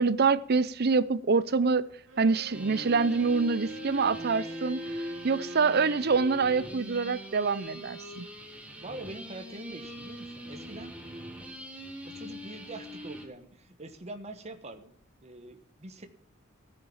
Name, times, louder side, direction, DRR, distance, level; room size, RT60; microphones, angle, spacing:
voice 1, 0.0-1.9 2.2-4.8 5.2-8.3, right 4 dB, 50° right, 0.7 m, -26 dB
Bowed string instrument, 2.1-6.4, right 2 dB, 70° right, 2.3 m, -47 dB
sound 1, 2.5-13.3, equal, 5° right, 2.1 m, -41 dB
voice 2, 8.8-10.9 12.1-14.9 15.2-16.1, right 2 dB, 30° right, 1.2 m, -44 dB
15.5 x 6.8 x 7.3 m
head